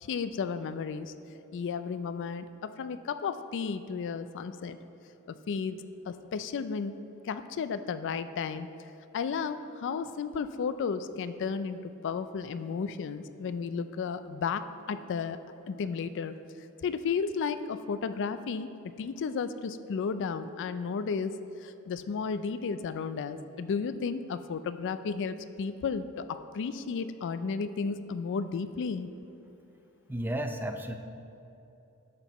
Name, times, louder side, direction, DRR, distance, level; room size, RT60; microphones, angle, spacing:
voice 1, 0.0-1.1 1.5-4.8 5.3-6.9 7.2-8.7 9.1-14.6 14.9-15.4 15.7-16.4 16.8-18.7 19.0-21.4 21.6-29.1, left 5 dB, 55° left, 12 dB, 0.4 m, -33 dB
voice 2, 30.1-31.0, right 1 dB, 10° right, 6 dB, 0.4 m, -33 dB
11.0 x 7.7 x 3.0 m, 2.9 s
head